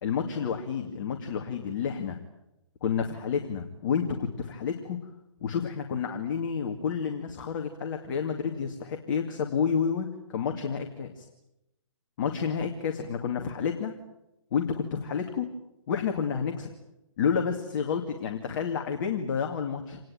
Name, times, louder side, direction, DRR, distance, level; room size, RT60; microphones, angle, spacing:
voice 1, 0.0-2.2 2.8-5.0 5.4-11.3 12.2-13.9 14.5-15.5 15.9-16.7 17.2-20.0, left 7 dB, 40° left, 4 dB, 2.4 m, -30 dB
27.0 x 19.5 x 9.0 m, 0.90 s
figure-of-eight pair, 145°, 17 cm